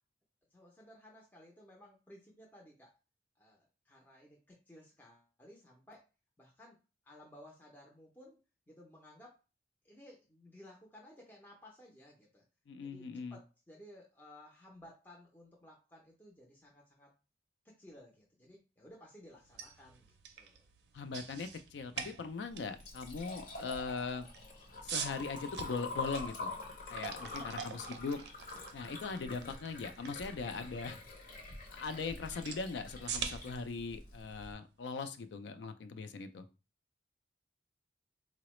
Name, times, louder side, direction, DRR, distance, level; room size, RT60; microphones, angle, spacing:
voice 1, 0.5-2.9 3.4-6.0 6.4-6.8 7.0-8.4 8.7-9.4 9.8-12.4 12.8-17.1 17.6-20.6 27.4-28.0, left 1 dB, 10° left, -2 dB, 0.5 m, -57 dB
voice 2, 12.7-13.4 20.9-24.3 24.8-26.5 26.9-28.2 28.7-31.0 31.7-36.5, left 4 dB, 75° left, 10 dB, 0.4 m, -40 dB
sound 1, 19.4-35.3, right 7 dB, 65° right, 0.4 m, -47 dB
Liquid, 22.5-34.5, left 3 dB, 50° left, 0.7 m, -46 dB
3.8 x 2.0 x 3.0 m, 0.31 s
head